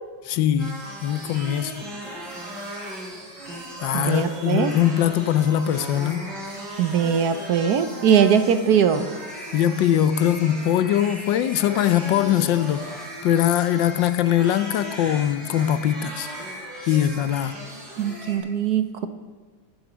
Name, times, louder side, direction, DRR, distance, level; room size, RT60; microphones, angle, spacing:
voice 1, 0.2-1.8 3.8-6.3 9.5-12.9 13.2-16.3 16.9-17.6, left 11 dB, 80° left, 1.4 m, -22 dB
sound 1, 0.6-18.4, equal, 90° right, 5.0 m, -37 dB
voice 2, 3.9-4.7 6.8-9.1 18.0-19.1, right 7 dB, 65° right, 1.3 m, -21 dB
23.0 x 7.8 x 6.2 m
omnidirectional pair, 2.0 m